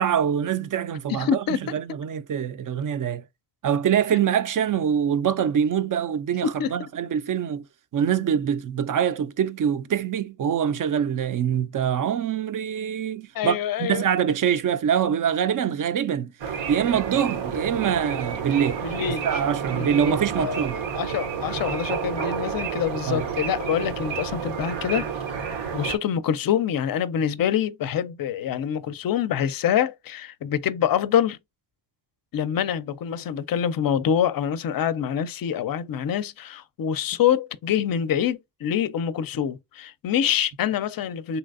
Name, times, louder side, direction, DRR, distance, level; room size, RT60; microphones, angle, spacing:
voice 1, 0.0-3.2 3.6-7.6 7.9-16.3 16.7-18.8 19.2-20.8 23.1-23.3, right 8 dB, 45° right, 0.4 m, -24 dB
voice 2, 1.1-1.6 6.4-6.7 13.3-14.0 18.8-19.3 19.7-20.7 20.9-25.1 25.7-31.4 32.3-41.4, left 9 dB, 50° left, 0.5 m, -25 dB
sound 1, 16.4-26.0, right 7 dB, 80° right, 0.7 m, -30 dB
3.3 x 2.9 x 2.4 m
cardioid pair, 60°, 46 cm